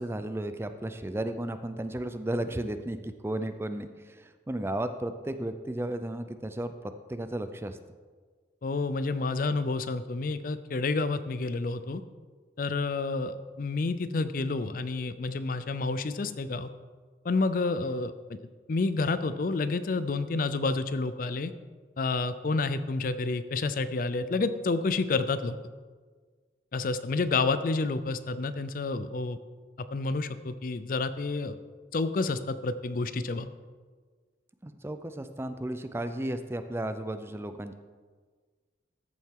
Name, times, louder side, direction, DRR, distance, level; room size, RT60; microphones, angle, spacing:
voice 1, 0.0-7.8 34.6-37.7, right 1 dB, 15° right, 9 dB, 0.4 m, -34 dB
voice 2, 8.6-12.0 12.6-16.7 17.2-18.4 18.7-21.5 22.0-25.6 26.7-29.4 29.9-31.6 31.9-33.5, left 3 dB, 50° left, 13 dB, 0.4 m, -29 dB
14.0 x 7.4 x 3.7 m, 1.5 s
head